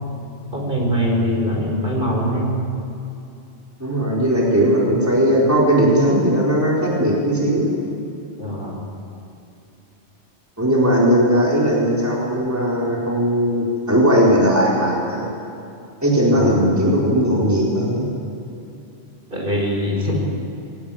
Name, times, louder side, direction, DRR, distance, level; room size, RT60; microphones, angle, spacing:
voice 1, 0.5-2.5 8.4-8.8 16.3-17.1 19.3-20.2, equal, 45° right, -1 dB, 4.7 m, -23 dB
voice 2, 3.8-7.7 10.6-15.3 16.0-18.0, equal, 15° right, -5 dB, 4.2 m, -18 dB
22.0 x 18.0 x 9.0 m, 2.7 s
omnidirectional pair, 1.2 m